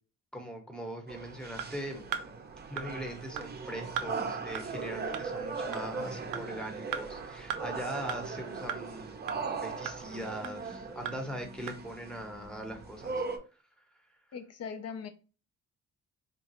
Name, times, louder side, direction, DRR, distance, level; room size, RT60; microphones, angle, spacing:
voice 1, 0.3-2.1 2.7-13.2, equal, 5° left, 0.9 m, -41 dB
sound 1, 1.1-13.4, right 4 dB, 35° right, 0.6 m, -39 dB
sound 2, 1.6-1.7 2.1-2.3 2.8-2.9 3.4-3.5 4.0-4.1 4.6-4.7 5.1-5.2 5.7-5.8 6.3-6.4 6.9-7.0 7.5-7.6 8.1-8.2 8.7-8.8 9.3-9.4 9.9-10.0 10.4-10.5 11.1-11.2 11.7-11.8, right 8 dB, 85° right, 0.5 m, -35 dB
voice 2, 14.3-15.1, left 6 dB, 55° left, 0.6 m, -40 dB
3.8 x 2.3 x 2.9 m
cardioid pair, 90°, 30 cm